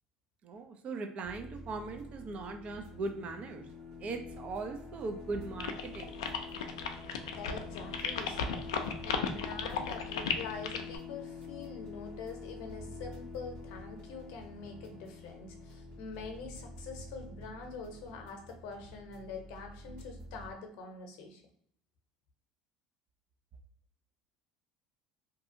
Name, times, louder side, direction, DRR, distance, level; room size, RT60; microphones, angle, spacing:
voice 1, 0.4-3.7 4.0-6.2, right 3 dB, 50° right, 6 dB, 0.5 m, -39 dB
sound 1, 1.2-20.5, left 3 dB, 85° right, 1.2 m, -47 dB
sound 2, 5.6-11.0, left 7 dB, 90° left, 0.3 m, -35 dB
voice 2, 7.3-21.4, left 4 dB, 70° left, 4 dB, 0.7 m, -45 dB
2.7 x 2.3 x 2.6 m, 0.68 s
hypercardioid pair, 80°, 3 cm